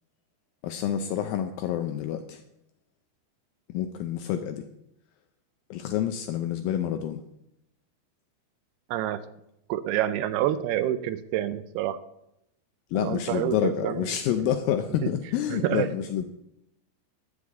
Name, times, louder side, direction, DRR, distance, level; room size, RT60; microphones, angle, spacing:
voice 1, 0.6-2.4 3.7-4.6 5.7-7.2 12.9-16.2, left 10 dB, 80° left, 7 dB, 2.1 m, -28 dB
voice 2, 8.9-9.2 9.7-12.0 13.0-14.1 15.0-15.1 15.5-15.9, right 12 dB, 80° right, 13 dB, 2.4 m, -28 dB
11.5 x 4.9 x 8.2 m, 0.81 s
omnidirectional pair, 4.7 m